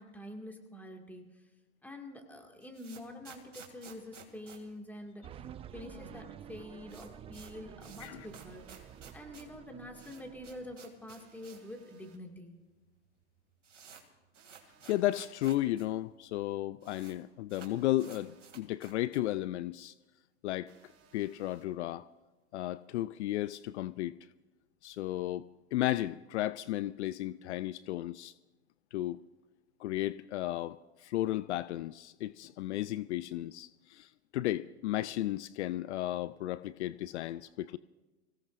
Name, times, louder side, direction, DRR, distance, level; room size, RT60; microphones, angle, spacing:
voice 1, 0.0-1.4 1.8-5.5 5.7-12.6, left 1 dB, 5° left, 2 dB, 2.1 m, -47 dB
sound 1, 2.3-5.6 5.8-5.9 6.2-6.3 6.6-11.8 12.1-12.2 12.9-13.0 13.2-15.9 16.1-16.2 16.4-17.2 17.5-19.4, right 6 dB, 85° right, 2.6 m, -54 dB
sound 2, 5.2-10.8, right 9 dB, 15° right, 0.4 m, -50 dB
sound 3, 8.0-9.0 11.2-12.2 14.3-15.3 17.5-18.5 20.7-21.6, right 7 dB, 45° right, 3.3 m, -64 dB
voice 2, 14.9-19.9 20.4-20.7 21.1-22.1 22.5-24.2 24.8-28.3 28.9-29.2 29.8-37.8, left 15 dB, 70° left, 18 dB, 0.5 m, -34 dB
26.0 x 16.5 x 2.6 m, 1.2 s
hypercardioid pair, 100°, 36 cm